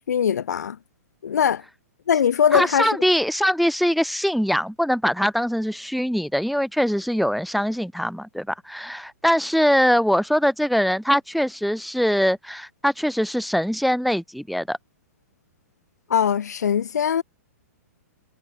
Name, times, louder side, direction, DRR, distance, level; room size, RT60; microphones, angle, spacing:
voice 1, 0.1-0.8 1.2-1.6 2.1-3.0 16.1-17.2, left 8 dB, 85° left, 0.5 m, -21 dB
voice 2, 2.5-14.8, equal, ahead, 0.4 m, -22 dB
hypercardioid pair, 135°, 9 cm